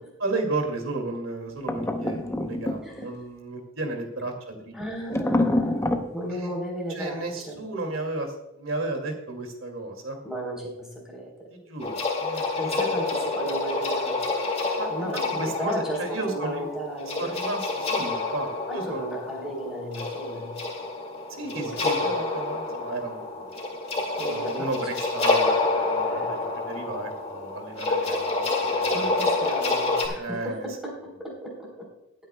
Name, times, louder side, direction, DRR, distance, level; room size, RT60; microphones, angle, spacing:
voice 1, 0.2-4.7 6.3-6.5 6.9-10.2 11.5-12.9 14.8-16.7 17.2-19.0 21.3-23.4 23.9-24.0 24.3-29.2 30.2-30.7, right 2 dB, 75° right, 4 dB, 2.3 m, -33 dB
sound 1, 1.7-3.1 5.1-6.1, left 1 dB, 15° left, 0.8 m, -26 dB
voice 2, 4.7-5.8 6.1-7.6 10.2-11.3 12.6-14.3 14.9-17.3 18.7-20.6 21.6-22.1 24.2-24.7 26.0-26.6 28.9-31.9, right 1 dB, 5° right, -2 dB, 3.8 m, -34 dB
sound 2, 11.8-30.1, left 3 dB, 30° left, 2.1 m, -28 dB
20.0 x 9.2 x 2.3 m, 0.92 s
head